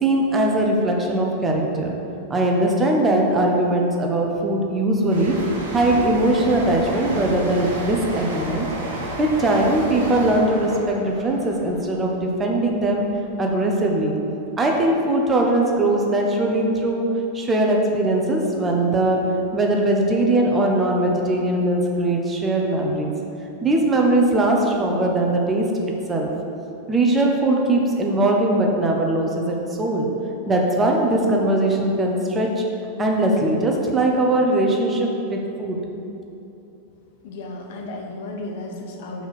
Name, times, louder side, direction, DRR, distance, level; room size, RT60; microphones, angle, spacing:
voice 1, 0.0-1.9 2.3-5.4 5.7-8.7 8.9-13.1 13.4-14.1 14.6-23.1 23.6-25.7 26.1-26.3 26.9-30.1 30.5-32.6 33.0-35.8, right 1 dB, 20° right, 0 dB, 1.1 m, -20 dB
sound 1, 5.1-12.6 12.9-13.2, right 1 dB, 65° right, 1.4 m, -32 dB
voice 2, 37.2-39.3, left 2 dB, 60° left, 1 dB, 1.0 m, -34 dB
5.6 x 4.5 x 6.0 m, 2.9 s
figure-of-eight pair, 90°, 0 cm